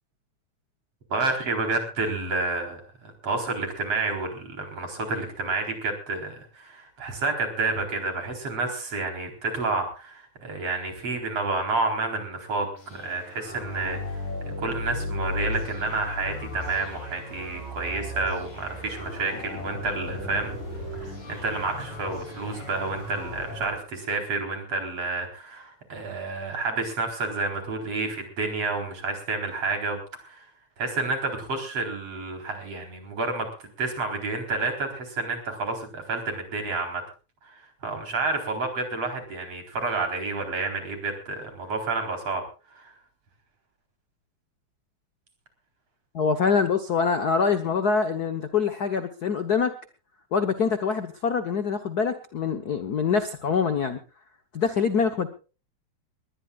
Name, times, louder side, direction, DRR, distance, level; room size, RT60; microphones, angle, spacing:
voice 1, 1.1-20.5 20.9-30.5 30.8-33.5 33.8-37.0 37.4-42.4 42.7-42.9, right 3 dB, 55° right, 4 dB, 5.2 m, -30 dB
sound 1, 12.7-23.8, left 1 dB, 80° left, 7.1 m, -35 dB
voice 2, 46.1-49.7 50.3-54.0 54.5-55.3, left 5 dB, 65° left, 8 dB, 0.9 m, -24 dB
21.0 x 20.0 x 2.4 m, 0.34 s
omnidirectional pair, 3.4 m